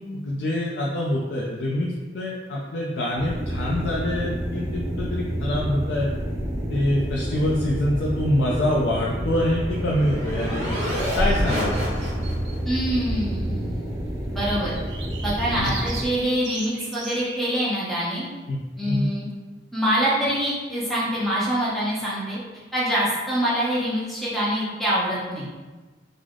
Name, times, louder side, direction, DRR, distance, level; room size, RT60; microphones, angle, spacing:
voice 1, 0.0-6.1 6.7-12.0 15.5-15.7 18.5-18.6 18.9-19.1, left 1 dB, 75° left, -3 dB, 0.4 m, -25 dB
sound 1, 3.2-16.1, equal, 15° right, 0.4 m, -29 dB
sound 2, 9.3-12.6, equal, 45° right, 1.0 m, -28 dB
sound 3, 11.3-12.9 14.7-17.4, right 5 dB, 80° right, 0.4 m, -39 dB
voice 2, 12.6-13.8 14.3-14.8 15.2-18.3 18.8-19.3 19.7-22.4 22.7-25.5, equal, ahead, -8 dB, 0.8 m, -25 dB
3.3 x 2.0 x 3.6 m, 1.3 s
head